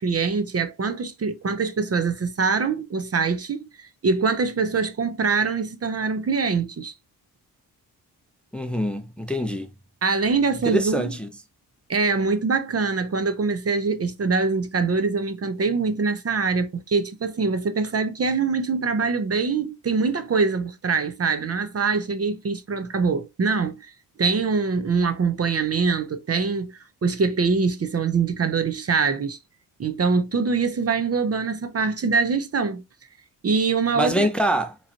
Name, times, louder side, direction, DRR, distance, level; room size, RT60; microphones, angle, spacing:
voice 1, 0.0-6.9 10.0-11.1 11.9-23.9 24.2-29.4 29.8-32.8 33.4-34.3, right 4 dB, 35° right, 0.7 m, -24 dB
voice 2, 8.5-9.7 10.7-11.3 34.0-34.8, equal, 5° left, 0.6 m, -24 dB
4.0 x 3.0 x 2.5 m
cardioid pair, 60°, 40 cm